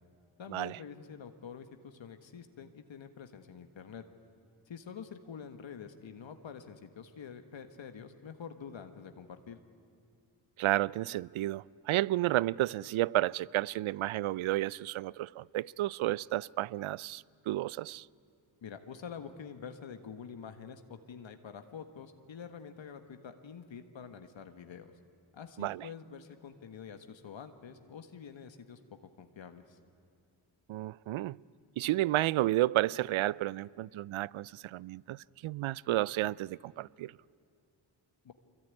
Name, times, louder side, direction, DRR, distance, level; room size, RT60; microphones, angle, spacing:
voice 1, 0.4-4.0 4.7-9.6 18.6-24.9 25.3-28.8 29.2-29.8 38.2-38.3, left 7 dB, 70° left, 1.6 m, -47 dB
voice 2, 10.6-18.1 25.6-25.9 30.7-31.4 31.8-37.1, right 16 dB, 80° right, 0.5 m, -32 dB
24.5 x 22.5 x 9.7 m
cardioid pair, 50°, 47 cm